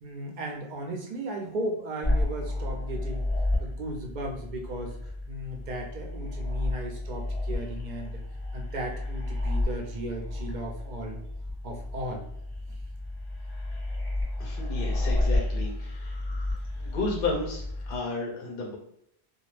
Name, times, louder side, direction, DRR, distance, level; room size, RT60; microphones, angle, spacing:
voice 1, 0.0-3.2 3.6-4.9 5.3-8.1 8.5-11.2 11.6-12.3, right 1 dB, 55° right, 1 dB, 0.6 m, -36 dB
sound 1, 2.0-18.0, left 1 dB, 25° left, 0.6 m, -31 dB
voice 2, 14.4-16.2 16.8-18.8, left 3 dB, 65° left, -1 dB, 0.7 m, -33 dB
2.3 x 2.0 x 3.1 m, 0.75 s
omnidirectional pair, 1.1 m